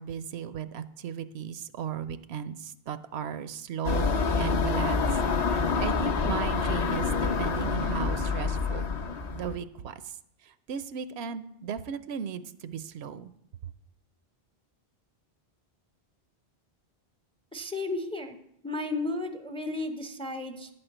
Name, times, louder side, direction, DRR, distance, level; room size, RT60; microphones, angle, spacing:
voice 1, 0.0-5.0 5.4-8.8 9.3-9.9 10.5-13.3, right 8 dB, 80° right, 13 dB, 0.8 m, -36 dB
sound 1, 3.8-9.6, left 4 dB, 45° left, 0.7 m, -27 dB
voice 2, 17.5-18.4 18.6-20.7, left 2 dB, 5° left, 6 dB, 0.5 m, -33 dB
10.5 x 4.3 x 7.7 m, 0.76 s
omnidirectional pair, 1.1 m